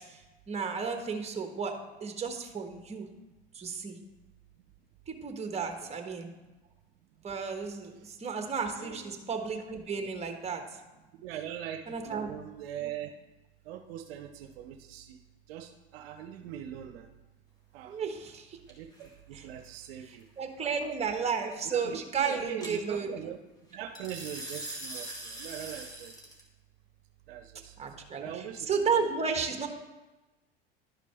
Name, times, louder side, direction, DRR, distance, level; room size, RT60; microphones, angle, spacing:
voice 1, 0.5-1.7 2.0-3.1 3.5-4.0 5.1-6.3 7.2-10.6 11.9-12.3 17.9-18.6 19.3-19.5 20.4-23.1 27.8-29.7, right 5 dB, 20° right, 5 dB, 1.3 m, -33 dB
voice 2, 8.7-9.2 11.1-13.1 13.6-15.2 15.5-17.1 17.7-18.0 18.7-20.3 20.6-20.9 21.6-23.4 23.7-26.1 27.3-27.7 28.1-28.7, right 10 dB, 70° right, 6 dB, 0.7 m, -42 dB
sound 1, 18.7-19.1 22.6-22.7 23.9-26.4, right 1 dB, 10° left, 2.1 m, -41 dB
11.5 x 5.0 x 3.4 m, 1.1 s
hypercardioid pair, 90°, 31 cm